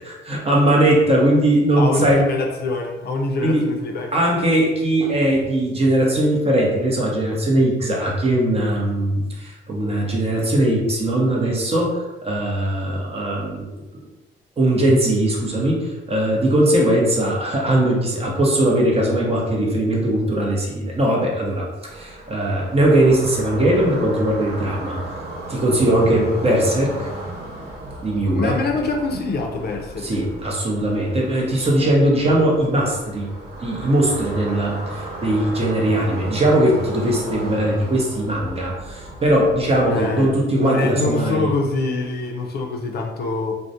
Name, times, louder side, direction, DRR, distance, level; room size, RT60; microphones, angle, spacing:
voice 1, 0.0-2.3 3.4-3.7 4.1-13.6 14.6-25.0 25.5-27.1 28.0-28.6 30.0-33.3 33.6-41.5, right 1 dB, 30° right, -2 dB, 0.7 m, -20 dB
voice 2, 1.8-4.1 28.3-30.3 39.8-40.3 40.6-43.5, left 3 dB, 55° left, 1 dB, 0.4 m, -24 dB
sound 1, 21.9-40.3, right 1 dB, 50° right, 1.3 m, -35 dB
2.3 x 2.1 x 2.7 m, 1.1 s
cardioid pair, 90°, 20 cm